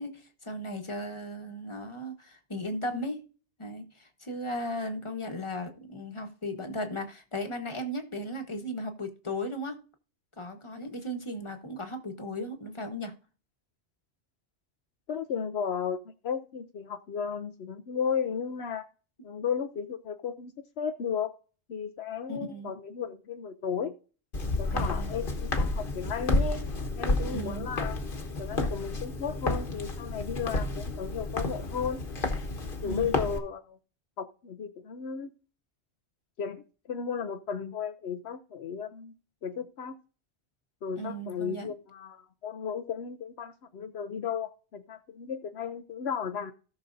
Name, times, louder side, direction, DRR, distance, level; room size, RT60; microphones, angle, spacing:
voice 1, 0.0-3.2 3.6-9.8 10.4-13.2 22.3-22.7 24.7-25.2 27.3-27.7 32.8-33.2 41.0-41.7, equal, 25° left, 1.3 m, -36 dB
voice 2, 15.1-16.0 16.2-18.9 19.2-21.3 21.7-23.9 24.6-26.6 27.0-28.0 28.4-32.0 32.8-33.8 34.2-35.3 36.4-39.1 39.4-40.0 40.8-46.5, left 7 dB, 70° left, 0.9 m, -34 dB
Walk footsteps, 24.3-33.4, left 2 dB, 50° left, 1.4 m, -31 dB
17.0 x 6.1 x 2.6 m
omnidirectional pair, 1.1 m